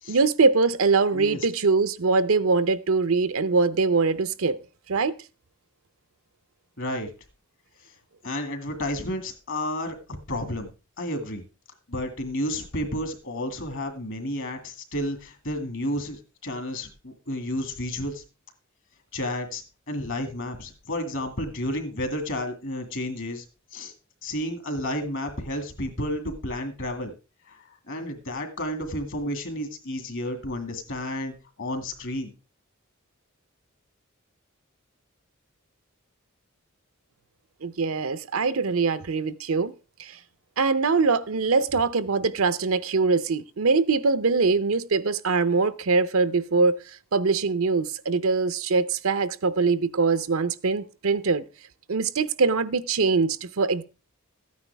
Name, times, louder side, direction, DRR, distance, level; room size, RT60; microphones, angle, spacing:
voice 1, 0.1-4.6 4.9-5.2 37.6-39.7 40.0-40.2 40.6-46.8 47.1-51.4 51.9-53.8, right 4 dB, 70° right, 0.7 m, -23 dB
voice 2, 1.1-1.5 6.8-7.1 8.2-10.0 10.3-10.7 11.0-11.4 11.9-18.2 19.1-23.4 23.7-23.9 24.2-27.1 27.5-32.3, left 1 dB, 60° left, 2.2 m, -31 dB
13.5 x 9.5 x 3.4 m
head